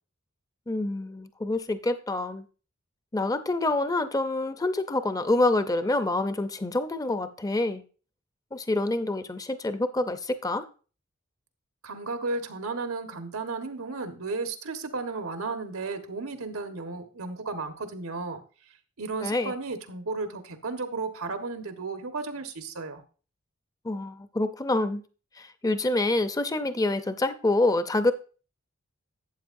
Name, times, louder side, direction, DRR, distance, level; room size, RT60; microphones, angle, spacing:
voice 1, 0.7-2.4 3.1-7.8 8.5-10.6 19.2-19.5 23.8-25.0 25.4-28.1, left 2 dB, 15° left, 10 dB, 0.6 m, -27 dB
voice 2, 11.8-18.4 18.7-23.0, right 3 dB, 85° right, 6 dB, 1.4 m, -34 dB
12.0 x 8.3 x 2.6 m, 0.36 s
head